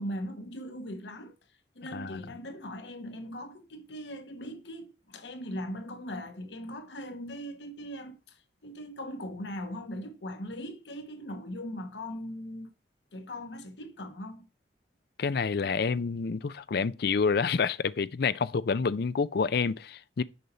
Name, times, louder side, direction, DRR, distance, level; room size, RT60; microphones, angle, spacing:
voice 1, 0.0-1.3 1.7-12.7 13.1-14.5, equal, 85° left, 1.2 m, -40 dB
voice 2, 1.9-2.2 15.2-20.2, left 5 dB, 60° left, 0.5 m, -28 dB
6.6 x 5.5 x 4.2 m
head